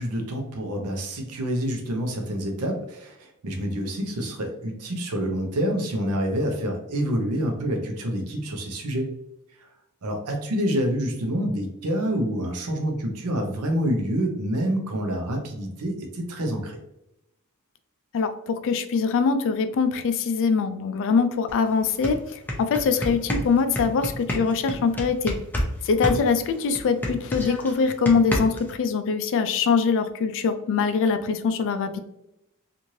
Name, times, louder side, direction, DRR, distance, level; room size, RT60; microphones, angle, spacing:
voice 1, 0.0-9.1 9.6-9.7 10.0-16.8, equal, 85° right, 3 dB, 0.7 m, -27 dB
voice 2, 18.1-25.4 25.8-32.0, left 5 dB, 60° left, 9 dB, 0.3 m, -23 dB
sound 1, 21.5-21.6 21.9-25.7 26.0-28.7, equal, 10° left, 0.5 m, -28 dB
3.0 x 2.5 x 2.7 m, 0.85 s
head